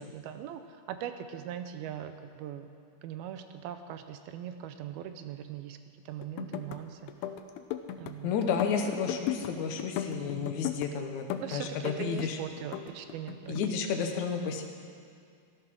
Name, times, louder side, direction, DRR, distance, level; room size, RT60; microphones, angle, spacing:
voice 1, 0.0-2.7 3.0-5.8 6.1-7.1 8.0-8.3 8.7-8.9 10.1-10.4 11.4-13.7 14.1-14.2, right 10 dB, 80° right, 8 dB, 2.4 m, -40 dB
sound 1, 6.2-6.8 7.1-8.1 8.4-9.5 9.8-10.9 11.3-12.3 12.6-13.7, left 11 dB, 90° left, 2.7 m, -36 dB
voice 2, 8.2-12.4 13.5-14.6, left 6 dB, 75° left, 4 dB, 1.8 m, -32 dB
15.0 x 11.5 x 6.2 m, 2.3 s
omnidirectional pair, 4.7 m